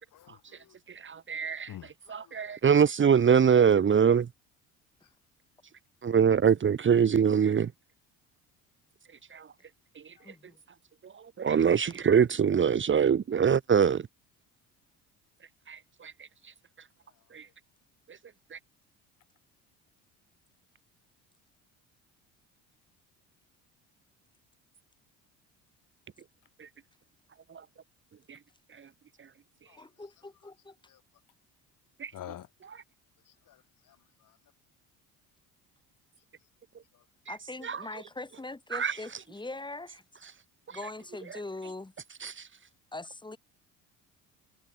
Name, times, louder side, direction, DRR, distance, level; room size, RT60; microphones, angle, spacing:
voice 1, 0.1-0.8 1.7-2.8 5.0-5.1 10.2-10.3 17.1-17.5 29.7-30.0 30.9-31.0 32.1-32.5 33.3-34.4 36.9-37.0, left 12 dB, 60° left, 7.0 m, -50 dB
voice 2, 1.0-1.7 2.1-4.3 6.0-7.7 9.3-9.4 11.4-14.0 15.7-16.1 17.3-17.4 18.5-18.6 32.0-32.1 37.6-37.8 38.7-38.9 42.2-42.3, right 7 dB, 35° right, 1.3 m, -23 dB
voice 3, 10.2-10.6 11.9-12.0 29.8-30.7 37.3-40.0 40.7-41.9 42.9-43.4, left 2 dB, 15° left, 4.7 m, -42 dB
supercardioid pair, 80°, 36 cm